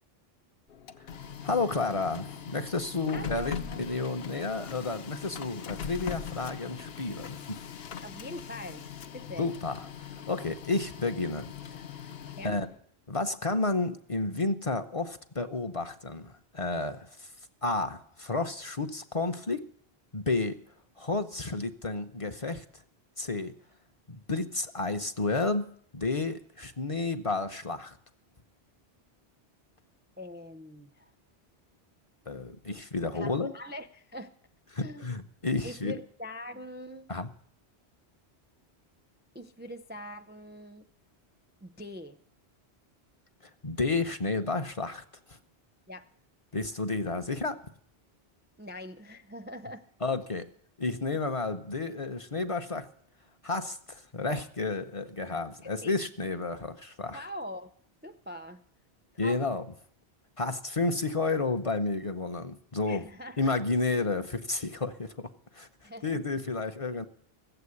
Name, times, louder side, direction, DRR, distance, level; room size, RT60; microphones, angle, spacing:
Printer, 0.7-12.8, left 7 dB, 70° left, 1.0 m, -41 dB
voice 1, 1.4-7.6 9.4-11.8 12.4-12.7 13.1-17.3 17.6-19.7 20.1-20.6 21.0-22.6 23.2-23.5 24.1-28.0 32.3-33.5 34.7-36.0 37.1-37.3 43.6-45.4 46.5-47.6 50.0-50.5 50.8-52.9 53.4-57.2 59.2-59.7 60.4-63.0 63.4-67.0, left 3 dB, 35° left, 7 dB, 0.7 m, -31 dB
voice 2, 3.1-3.8 8.0-8.9 9.1-9.5 12.4-12.6 30.2-31.1 32.7-32.8 33.1-34.3 34.8-35.2 35.6-37.1 39.3-40.8 41.6-42.2 45.9-46.1 48.6-49.8 55.6-55.9 57.1-57.7 58.0-58.6 59.1-59.4 62.9-63.5 65.8-66.2, left 1 dB, 15° right, 9 dB, 0.5 m, -43 dB
15.5 x 7.9 x 9.7 m, 0.63 s
omnidirectional pair, 1.1 m